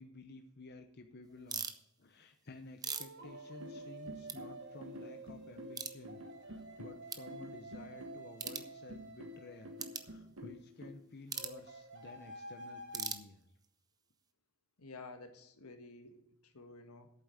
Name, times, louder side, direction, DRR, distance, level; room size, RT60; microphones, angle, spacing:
voice 1, 0.0-1.7 2.0-13.5, left 3 dB, 45° left, 4 dB, 0.8 m, -53 dB
sound 1, 1.3-1.5 2.8-10.2 11.4-13.1, right 2 dB, 50° right, 1.6 m, -51 dB
sound 2, 1.5-1.8 2.5-4.0 4.2-4.4 4.8-4.9 5.7-6.0 6.6-6.7 7.1-7.3 8.3-8.7 9.8-10.1 11.3-11.6 12.9-13.7, right 6 dB, 15° right, 0.6 m, -41 dB
sound 3, 3.2-10.9, equal, 70° right, 1.5 m, -49 dB
voice 2, 14.8-17.1, left 3 dB, 85° left, 6 dB, 1.5 m, -52 dB
8.5 x 7.7 x 8.4 m, 0.79 s
head